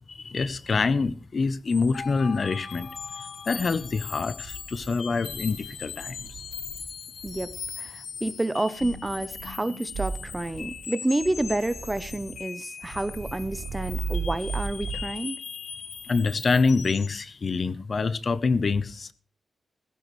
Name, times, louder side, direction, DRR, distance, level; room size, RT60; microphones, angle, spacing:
voice 1, 0.1-2.9 3.5-6.4 16.1-19.1, left 4 dB, 40° left, 0.6 m, -26 dB
sound 1, 1.5-1.6 1.9-3.1 3.4-3.9 4.4-4.9 5.3-6.9 7.2-7.7 8.8-9.5 9.9-10.8 11.2-12.4 12.8-15.1, right 5 dB, 80° right, 5.7 m, -37 dB
sound 2, 1.7-17.2, left 6 dB, 65° left, 1.1 m, -40 dB
voice 2, 7.2-15.4, right 1 dB, 10° right, 0.6 m, -29 dB
15.5 x 15.5 x 3.1 m
wide cardioid pair, 150°, 0 cm